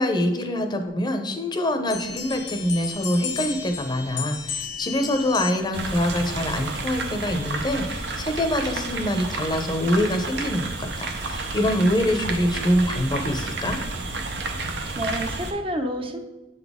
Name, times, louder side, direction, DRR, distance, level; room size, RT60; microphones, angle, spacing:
voice 1, 0.0-13.8, left 1 dB, 25° left, 6 dB, 0.6 m, -25 dB
sound 1, 1.9-5.8, left 6 dB, 70° left, 0.8 m, -33 dB
sound 2, 5.7-15.5, right 3 dB, 75° right, 0.7 m, -31 dB
voice 2, 14.7-16.2, equal, 30° right, 6 dB, 0.6 m, -29 dB
7.4 x 4.0 x 3.6 m, 1.1 s
head